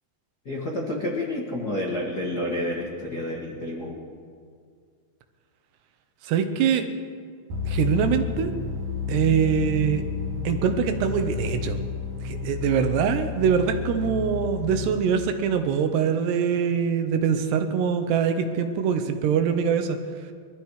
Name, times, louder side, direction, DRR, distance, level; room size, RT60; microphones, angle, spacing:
voice 1, 0.4-4.0, left 1 dB, 75° left, -2 dB, 0.9 m, -29 dB
voice 2, 6.2-6.9 7.7-8.5 9.1-10.0 10.4-11.8 12.2-20.3, right 7 dB, 80° right, 7 dB, 3.0 m, -23 dB
sound 1, 7.5-14.9, left 6 dB, 50° right, 3.4 m, -31 dB
21.5 x 13.5 x 4.8 m, 2.1 s
omnidirectional pair, 5.0 m